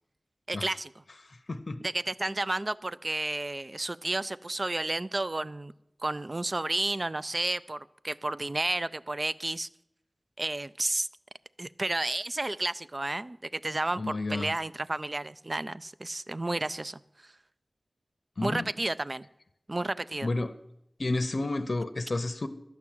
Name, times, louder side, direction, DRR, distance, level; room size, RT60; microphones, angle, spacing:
voice 1, 0.5-0.9 1.8-5.7 6.0-9.7 10.4-11.1 11.6-17.0 18.4-19.3 19.7-20.3, right 2 dB, 45° right, 16 dB, 0.4 m, -31 dB
voice 2, 1.5-1.8 14.0-14.5 18.4-18.7 20.2-20.5 21.0-22.5, left 2 dB, 65° left, 9 dB, 0.7 m, -31 dB
12.0 x 6.1 x 8.7 m, 0.83 s
wide cardioid pair, 45°, 0 cm